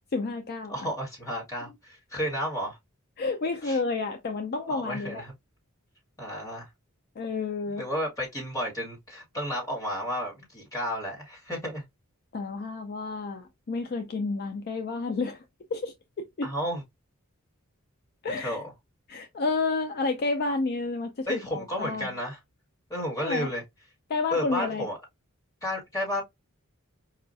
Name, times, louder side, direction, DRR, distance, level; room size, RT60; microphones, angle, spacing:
voice 1, 0.1-0.9 3.2-5.2 7.2-7.8 12.3-15.4 15.7-16.5 18.2-18.6 19.1-22.1 23.2-23.5 24.1-24.9, left 3 dB, 45° left, 0.4 m, -30 dB
voice 2, 0.7-2.8 3.6-3.8 4.7-5.3 6.2-6.7 7.7-11.8 16.4-16.8 18.4-18.7 21.3-22.4 22.9-23.6 24.3-25.0 25.6-26.2, equal, 15° left, 1.7 m, -32 dB
4.8 x 2.3 x 2.6 m
head